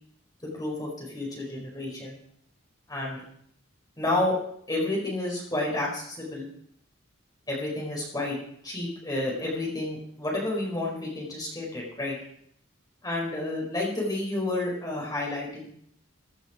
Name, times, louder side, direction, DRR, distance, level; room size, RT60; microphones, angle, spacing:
voice 1, 0.4-2.2 2.9-3.2 4.0-4.3 4.7-6.5 7.5-12.2 13.0-15.7, left 2 dB, 20° left, -3 dB, 4.8 m, -30 dB
15.5 x 11.0 x 5.0 m, 0.67 s
head